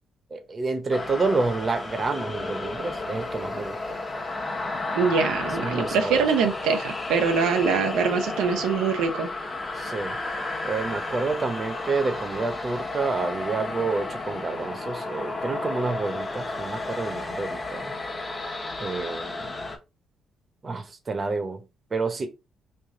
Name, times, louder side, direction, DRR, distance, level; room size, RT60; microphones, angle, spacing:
voice 1, 0.3-4.0 5.6-6.3 9.7-10.2 10.6-17.9 18.8-19.5 20.6-21.6 21.9-22.3, right 3 dB, 35° right, 0.8 m, -29 dB
sound 1, 0.9-19.8, left 2 dB, 30° left, 1.0 m, -32 dB
voice 2, 5.0-9.3, right 5 dB, 90° right, 0.5 m, -24 dB
3.3 x 2.5 x 3.6 m
cardioid pair, 90°, 0 cm